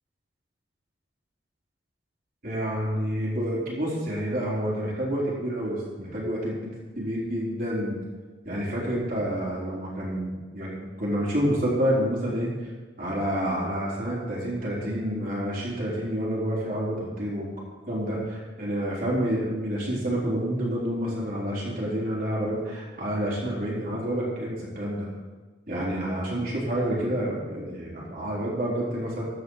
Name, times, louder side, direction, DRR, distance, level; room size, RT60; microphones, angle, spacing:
voice 1, 2.4-8.0 8.4-12.5 13.0-17.5 17.9-25.1 25.7-29.2, equal, 45° right, -6 dB, 4.1 m, -28 dB
14.5 x 5.7 x 6.6 m, 1.3 s
head